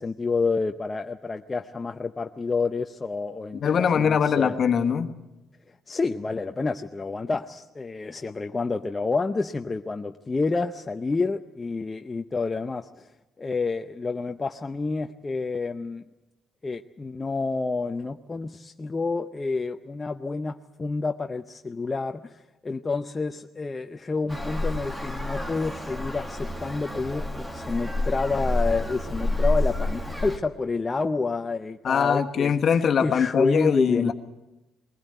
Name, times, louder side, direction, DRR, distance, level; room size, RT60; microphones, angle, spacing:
voice 1, 0.0-4.6 5.9-13.1 13.4-16.0 16.6-32.6 33.0-34.1, left 3 dB, 20° left, 0.6 m, -29 dB
voice 2, 3.5-5.1 31.8-34.1, left 7 dB, 45° left, 1.4 m, -22 dB
Traffic noise roadway noise, 24.3-30.4, left 1 dB, 5° right, 1.8 m, -29 dB
21.5 x 15.5 x 9.1 m
cardioid pair, 115°, 0 cm